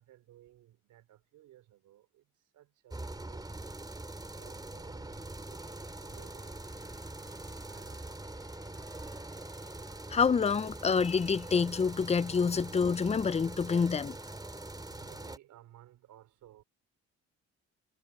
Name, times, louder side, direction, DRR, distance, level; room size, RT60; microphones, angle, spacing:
voice 1, 0.0-2.2 2.5-3.7 4.3-6.6 7.1-8.1 14.9-16.6, right 13 dB, 85° right, 4.6 m, -58 dB
sound 1, 2.9-15.4, right 2 dB, 15° right, 3.4 m, -43 dB
Trumpet, 5.0-13.3, left 14 dB, 85° left, 5.3 m, -65 dB
voice 2, 10.1-14.2, left 5 dB, 20° left, 0.5 m, -27 dB
cardioid pair, 90°, 30 cm